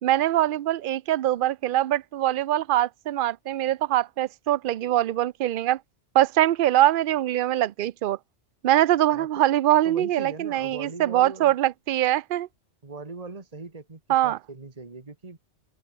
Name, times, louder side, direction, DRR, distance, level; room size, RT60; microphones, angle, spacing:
voice 1, 0.0-5.8 6.1-8.2 8.6-12.5 14.1-14.4, right 13 dB, 60° right, 0.7 m, -23 dB
voice 2, 9.9-11.6 12.8-15.4, right 3 dB, 35° right, 1.9 m, -40 dB
open air
omnidirectional pair, 1.1 m